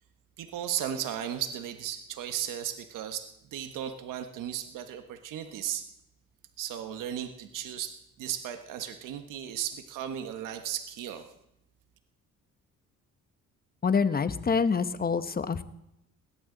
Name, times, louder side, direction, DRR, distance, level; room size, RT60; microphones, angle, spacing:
voice 1, 0.4-5.9 6.6-11.2, right 10 dB, 85° right, 7 dB, 1.4 m, -35 dB
voice 2, 13.8-15.6, left 5 dB, 30° left, 12 dB, 1.1 m, -26 dB
21.0 x 17.0 x 4.0 m, 0.81 s
cardioid pair, 95°, 31 cm